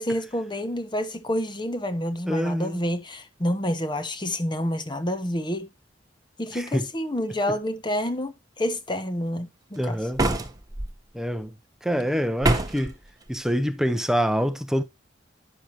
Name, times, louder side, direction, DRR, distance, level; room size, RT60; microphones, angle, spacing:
voice 1, 0.0-5.7 6.4-10.0, left 1 dB, 25° left, 1.1 m, -28 dB
voice 2, 2.3-2.8 6.5-6.9 9.8-10.2 11.1-11.5 11.8-12.9 13.3-14.8, equal, 5° right, 0.7 m, -26 dB
sound 1, 10.2-10.9 12.4-12.9, right 2 dB, 20° right, 1.2 m, -24 dB
10.0 x 6.5 x 3.0 m
head